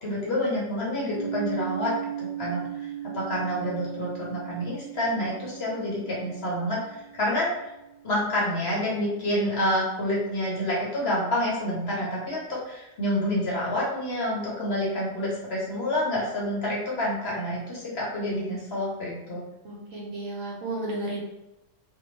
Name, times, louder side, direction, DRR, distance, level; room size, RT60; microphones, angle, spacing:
voice 1, 0.0-1.9 2.2-2.9 3.1-7.7 8.0-19.4, left 1 dB, 55° left, -5 dB, 0.7 m, -28 dB
sound 1, 1.1-8.9, right 10 dB, 90° right, 1.2 m, -38 dB
voice 2, 19.6-21.2, right 2 dB, 65° right, -4 dB, 1.0 m, -33 dB
2.6 x 2.2 x 3.0 m, 0.95 s
omnidirectional pair, 1.6 m